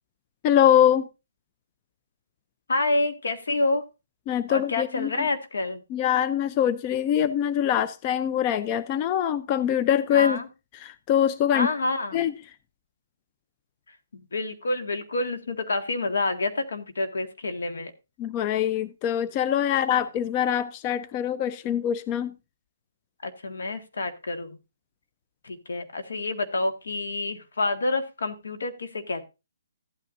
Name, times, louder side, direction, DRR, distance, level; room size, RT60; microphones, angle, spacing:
voice 1, 0.4-1.1 4.3-5.1 5.9-10.4 10.7-11.7 12.1-12.3 18.2-22.3, left 10 dB, 25° left, 0.5 m, -23 dB
voice 2, 2.7-3.8 4.5-5.8 10.1-10.5 11.5-12.3 13.9-17.9 19.7-19.8 23.2-24.6 25.4-29.2, left 2 dB, 75° left, 1.9 m, -28 dB
14.5 x 9.1 x 2.6 m
hypercardioid pair, 155°, 0 cm